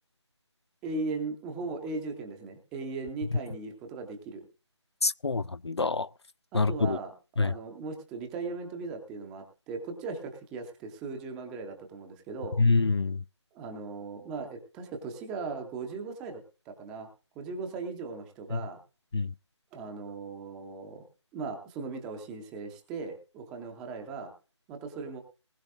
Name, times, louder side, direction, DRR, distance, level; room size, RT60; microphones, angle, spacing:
voice 1, 0.8-4.4 6.5-7.1 7.4-12.6 13.5-17.1 17.4-18.8 19.7-21.0 21.3-24.3 24.7-25.2, right 4 dB, 5° right, 0.6 m, -38 dB
voice 2, 5.0-6.1 6.5-7.0 7.4-7.5 12.6-13.2 18.5-18.6 19.1-19.3, left 3 dB, 60° left, 0.5 m, -26 dB
19.5 x 11.5 x 2.6 m
figure-of-eight pair, 155°, 15 cm